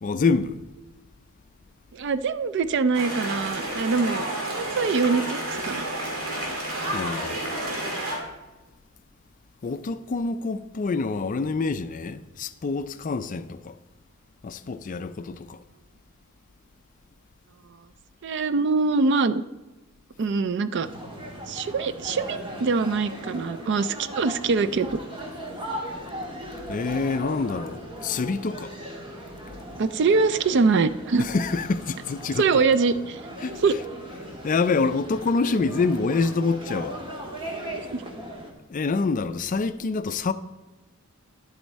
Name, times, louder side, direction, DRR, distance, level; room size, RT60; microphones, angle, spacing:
voice 1, 0.0-0.6 6.9-7.4 9.6-13.8 14.4-15.6 26.7-28.7 31.2-32.4 33.4-33.6 34.4-37.0 38.7-40.3, left 4 dB, 35° left, 0.4 m, -26 dB
voice 2, 1.9-4.2 4.5-5.9 18.2-19.4 20.2-20.9 21.5-25.0 29.8-31.3 32.4-33.2 33.6-33.8 37.9-38.0, right 4 dB, 55° right, 0.4 m, -23 dB
sound 1, 2.9-8.2, right 1 dB, 75° right, 2.3 m, -30 dB
sound 2, 20.8-38.5, right 1 dB, 25° right, 1.5 m, -38 dB
10.0 x 7.9 x 4.2 m
head